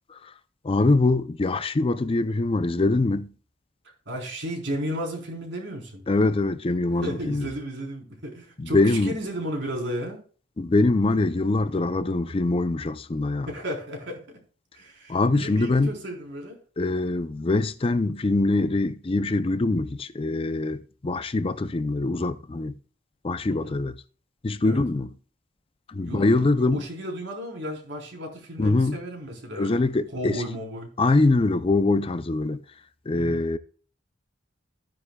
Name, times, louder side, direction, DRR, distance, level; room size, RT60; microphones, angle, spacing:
voice 1, 0.6-3.3 6.1-7.5 8.6-9.1 10.6-13.5 15.1-15.9 16.8-22.7 23.2-24.0 24.4-25.1 25.9-26.8 28.6-29.0 29.6-30.4 31.0-32.6 33.1-33.6, left 2 dB, 30° left, 0.5 m, -23 dB
voice 2, 4.1-6.0 6.9-10.2 13.5-14.4 14.7-16.6 23.5-23.7 24.6-24.8 26.0-29.8 30.1-30.9 33.1-33.4, equal, 65° right, 3.9 m, -34 dB
13.5 x 9.7 x 2.3 m
head